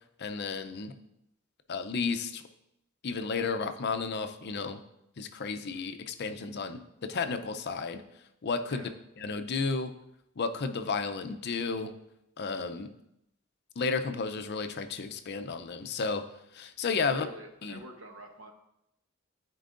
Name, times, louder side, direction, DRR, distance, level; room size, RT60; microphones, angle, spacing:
voice 1, 0.2-0.9 1.7-2.4 3.0-4.8 5.2-8.0 8.4-8.9 9.2-9.9 10.4-11.9 12.4-12.9 13.8-16.2 16.5-17.3 17.6-17.8, left 4 dB, 55° left, 8 dB, 0.6 m, -32 dB
voice 2, 17.0-18.5, right 1 dB, 75° right, 4 dB, 1.1 m, -48 dB
13.5 x 4.6 x 2.5 m, 0.83 s
head